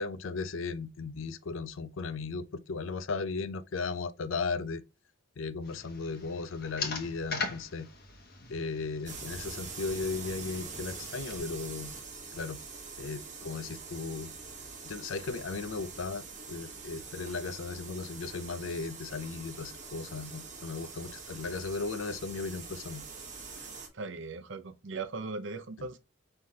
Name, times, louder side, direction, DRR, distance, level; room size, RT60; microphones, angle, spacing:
voice 1, 0.0-4.8 5.4-7.9 8.5-12.0 12.3-12.6 13.0-14.3 14.8-23.0 25.8-25.9, left 4 dB, 75° left, 0.5 m, -36 dB
sound 1, 5.6-11.4, left 4 dB, 50° left, 1.2 m, -41 dB
sound 2, 9.1-23.9, right 4 dB, 35° right, 1.2 m, -44 dB
voice 2, 23.9-26.0, right 3 dB, 65° right, 0.6 m, -38 dB
5.6 x 3.3 x 2.7 m
head